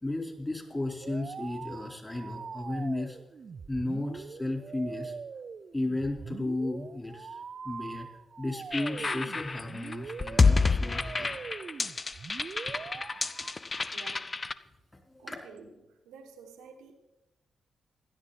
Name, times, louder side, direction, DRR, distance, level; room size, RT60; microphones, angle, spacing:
voice 1, 0.0-3.2 3.7-5.1 5.7-7.4 7.6-8.1 8.4-11.4 15.1-15.3, left 2 dB, 20° left, 4.1 m, -34 dB
sound 1, 1.0-13.5, right 5 dB, 55° right, 0.5 m, -43 dB
sound 2, 8.7-14.5, left 4 dB, 40° left, 0.6 m, -28 dB
voice 2, 13.9-14.4 15.2-16.9, right 5 dB, 85° right, 1.4 m, -51 dB
16.5 x 11.5 x 4.3 m
hypercardioid pair, 40°, 0 cm